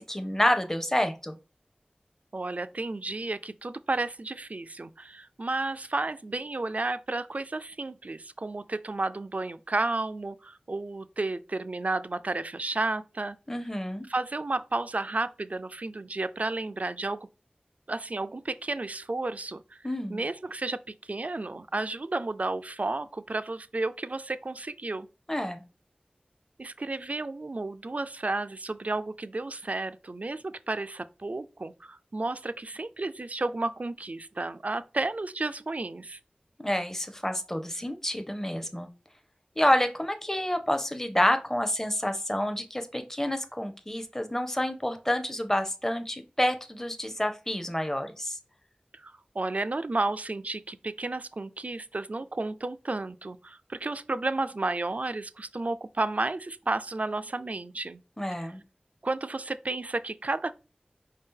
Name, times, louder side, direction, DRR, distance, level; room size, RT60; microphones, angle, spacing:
voice 1, 0.0-1.4 13.5-14.1 19.8-20.2 25.3-25.6 36.6-38.9 39.6-48.4 58.2-58.6, left 1 dB, 15° left, 0.5 m, -28 dB
voice 2, 2.3-13.4 14.1-17.2 17.9-19.8 20.1-25.1 26.6-36.2 48.9-58.0 58.4-58.5 59.0-60.5, right 2 dB, 55° right, 0.3 m, -32 dB
4.9 x 2.7 x 3.7 m
wide cardioid pair, 50°, 3 cm